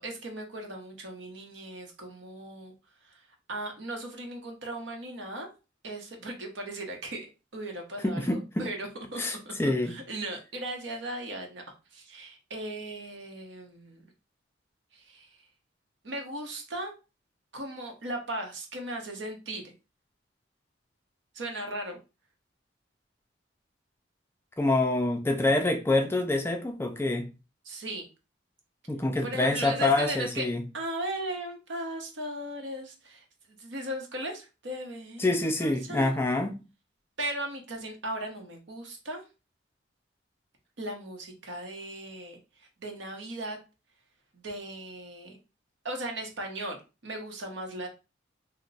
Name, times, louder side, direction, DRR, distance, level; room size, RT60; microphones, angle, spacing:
voice 1, 0.0-2.7 3.1-3.2 3.5-5.5 5.8-7.3 7.5-11.6 11.9-14.0 14.9-15.4 16.0-16.9 17.5-19.7 21.3-22.0 27.6-28.1 29.2-30.5 30.7-36.1 37.2-39.2 40.8-43.6 44.3-45.4 45.8-46.8 47.0-47.9, right 1 dB, 65° right, 3 dB, 0.9 m, -37 dB
voice 2, 8.0-8.6 9.2-9.9 24.6-27.3 28.9-30.6 35.2-36.6, left 2 dB, 10° left, 5 dB, 0.3 m, -26 dB
2.9 x 2.1 x 3.9 m, 0.30 s
head